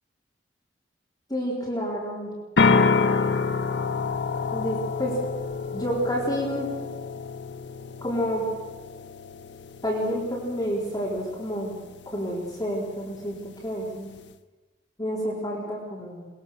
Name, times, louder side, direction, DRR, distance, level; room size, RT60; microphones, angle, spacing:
voice 1, 1.3-2.3 2.7-3.1 4.5-5.2 5.7-6.7 8.0-8.4 9.8-11.8 12.1-14.1 15.0-16.3, equal, 20° left, -4 dB, 4.4 m, -29 dB
sound 1, 2.6-14.3, left 4 dB, 70° left, 0.9 m, -29 dB
22.0 x 22.0 x 6.8 m, 1.2 s
head